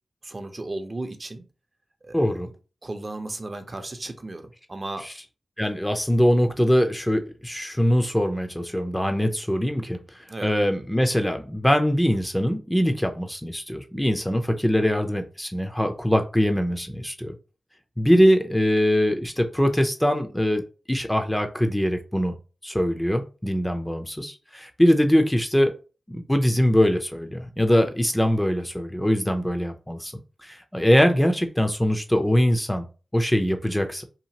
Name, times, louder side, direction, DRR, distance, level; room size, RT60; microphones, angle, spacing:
voice 1, 0.2-1.5 2.0-2.5 2.8-5.1 10.3-10.5, right 2 dB, 40° right, 0.6 m, -35 dB
voice 2, 2.1-2.5 5.6-10.0 10.4-17.3 18.0-22.4 22.6-25.7 26.1-30.1 30.4-32.9 33.1-34.0, equal, 10° left, 0.5 m, -22 dB
2.8 x 2.4 x 2.8 m
cardioid pair, 45°, 0 cm